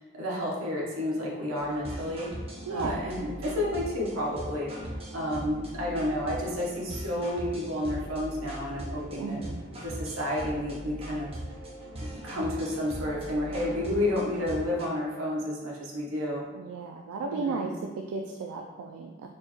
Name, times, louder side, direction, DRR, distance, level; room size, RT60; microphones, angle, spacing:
voice 1, 0.0-2.3 2.7-4.7 5.1-9.4 9.8-11.3 12.1-16.4 17.2-17.7, left 1 dB, 75° right, -4 dB, 0.9 m, -31 dB
sound 1, 1.6-14.9, right 1 dB, 30° right, 0.6 m, -40 dB
voice 2, 2.7-3.1 9.2-9.6 16.5-19.3, right 4 dB, 90° right, 1 dB, 0.3 m, -34 dB
4.3 x 2.2 x 3.0 m, 1.2 s
head